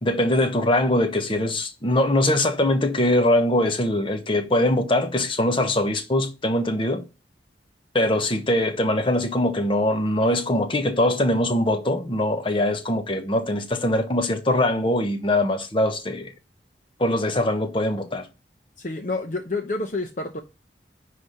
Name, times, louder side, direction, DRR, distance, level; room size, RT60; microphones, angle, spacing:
voice 1, 0.0-7.0 7.9-16.3 17.0-18.3, left 1 dB, 30° left, 1.1 m, -22 dB
voice 2, 18.8-20.4, left 2 dB, 45° left, 0.8 m, -28 dB
10.0 x 3.4 x 6.5 m
head